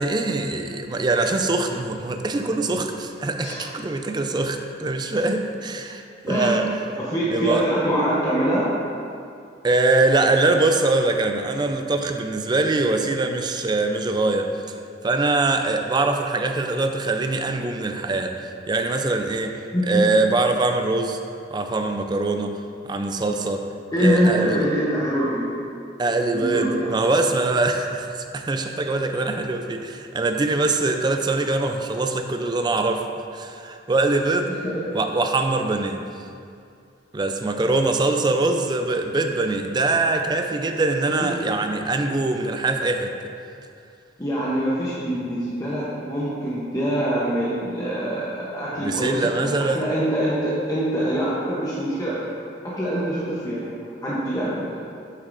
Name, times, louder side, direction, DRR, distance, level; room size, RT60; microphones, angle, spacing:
voice 1, 0.0-6.8 7.3-7.6 9.6-14.5 15.0-19.5 19.9-21.2 21.5-22.6 22.8-23.6 24.0-24.7 26.0-33.0 33.3-34.5 34.9-36.1 37.1-43.1 48.8-49.9, right 2 dB, 25° right, 5 dB, 0.4 m, -23 dB
voice 2, 6.3-6.6 7.0-8.7 19.7-20.0 23.9-25.5 26.3-26.9 34.6-35.0 41.2-41.3 44.2-52.2 52.6-53.6 54.0-54.8, equal, 20° left, -8 dB, 0.8 m, -24 dB
8.2 x 6.6 x 2.6 m, 2.4 s
head